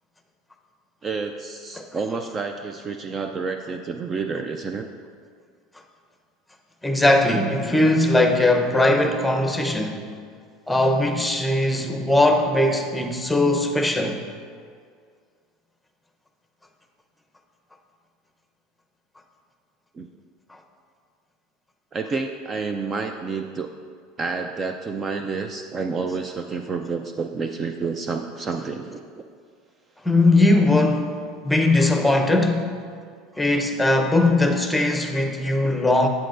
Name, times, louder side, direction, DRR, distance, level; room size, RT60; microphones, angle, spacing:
voice 1, 1.0-4.9 19.9-20.1 21.9-23.7 24.2-29.2, right 4 dB, 30° right, 0.4 m, -29 dB
voice 2, 6.8-10.1 10.7-14.2 30.0-31.1 31.4-32.7 33.4-36.1, left 2 dB, 5° left, 0.8 m, -20 dB
9.9 x 8.3 x 2.5 m
supercardioid pair, 110°, 0 cm